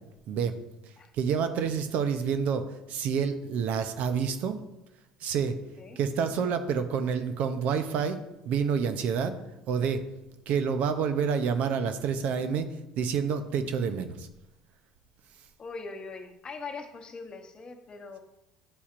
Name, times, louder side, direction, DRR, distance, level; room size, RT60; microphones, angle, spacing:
voice 1, 1.2-2.6 2.9-4.6 5.2-5.5 6.0-8.2 8.5-9.4 9.7-10.0 10.5-12.7 13.0-14.3, right 6 dB, 65° right, 9 dB, 0.6 m, -28 dB
voice 2, 15.6-18.2, left 4 dB, 35° left, 5 dB, 0.9 m, -41 dB
10.0 x 4.2 x 2.5 m, 0.93 s
supercardioid pair, 90°, 3 cm